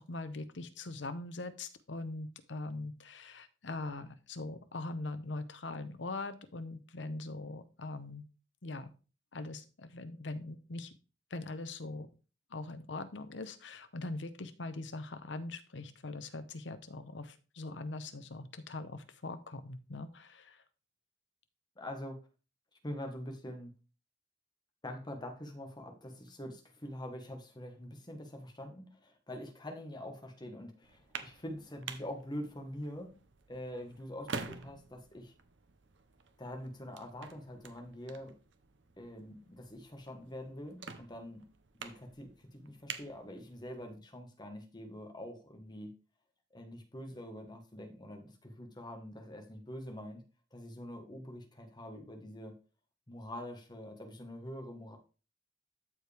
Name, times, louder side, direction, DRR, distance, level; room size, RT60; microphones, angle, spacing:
voice 1, 0.0-8.2 8.6-8.9 9.3-10.9 11.3-12.1 12.5-20.6, left 2 dB, 80° left, 11 dB, 0.9 m, -42 dB
voice 2, 21.8-22.2 22.8-23.7 24.8-33.1 33.5-35.3 36.4-38.4 39.0-41.4 41.8-45.9 46.5-50.2 50.5-52.6 53.1-55.0, left 1 dB, 25° left, 4 dB, 1.4 m, -45 dB
sound 1, 30.8-43.9, right 5 dB, 80° right, 1.0 m, -48 dB
13.0 x 4.7 x 3.4 m, 0.34 s
head